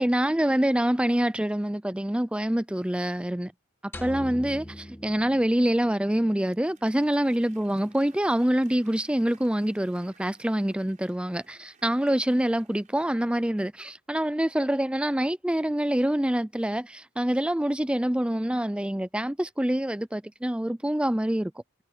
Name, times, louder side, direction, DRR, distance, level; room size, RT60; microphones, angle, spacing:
voice 1, 0.0-3.5 4.0-21.5, right 1 dB, 5° right, 0.4 m, -26 dB
sound 1, 3.9-6.2, left 1 dB, 10° left, 1.6 m, -41 dB
Applause / Crowd, 5.8-13.6, right 6 dB, 35° right, 5.8 m, -60 dB
head